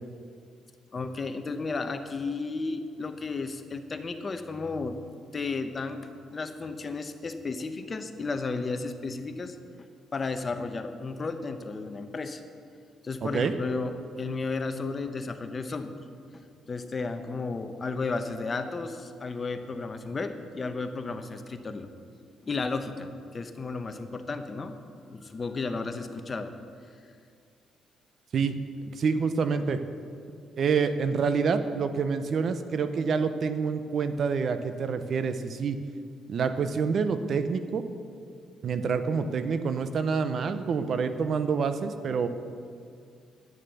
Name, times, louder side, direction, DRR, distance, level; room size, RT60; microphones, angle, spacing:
voice 1, 0.9-5.0 5.3-12.4 13.0-16.0 16.3-21.9 22.4-24.8 25.1-26.5, left 3 dB, 35° left, 8 dB, 1.0 m, -33 dB
voice 2, 13.2-13.5 28.3-28.5 28.9-29.8 30.6-35.8 36.3-37.8 38.6-42.3, right 5 dB, 55° right, 10 dB, 0.8 m, -27 dB
11.0 x 9.1 x 7.1 m, 2.3 s
cardioid pair, 85°, 0 cm